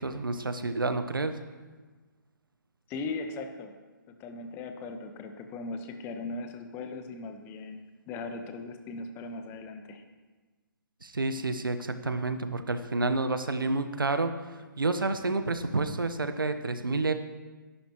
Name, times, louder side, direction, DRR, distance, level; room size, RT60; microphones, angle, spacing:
voice 1, 0.0-1.4 11.0-14.3 14.8-17.1, right 3 dB, 80° right, 9 dB, 1.2 m, -29 dB
voice 2, 2.9-3.8 4.1-10.0, left 3 dB, 20° left, 6 dB, 1.1 m, -39 dB
21.5 x 11.5 x 3.1 m, 1.3 s
figure-of-eight pair, 135°, 11 cm